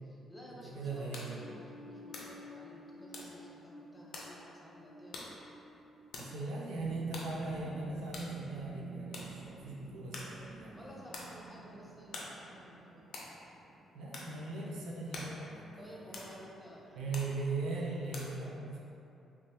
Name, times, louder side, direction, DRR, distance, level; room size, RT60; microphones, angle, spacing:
voice 1, 0.0-5.3 10.7-13.1 15.8-17.3, equal, 10° left, -4 dB, 0.6 m, -53 dB
sound 1, 0.6-18.2, left 2 dB, 70° left, 0.5 m, -51 dB
voice 2, 0.6-1.4 6.2-10.9 13.9-16.4 16.9-18.8, right 3 dB, 80° right, -3 dB, 0.6 m, -39 dB
sound 2, 0.8-7.2, left 1 dB, 20° right, 1.4 m, -54 dB
sound 3, 6.7-15.7 16.2-16.3, right 5 dB, 35° right, 0.3 m, -49 dB
3.4 x 3.1 x 2.7 m, 2.8 s
cardioid pair, 90°, 0 cm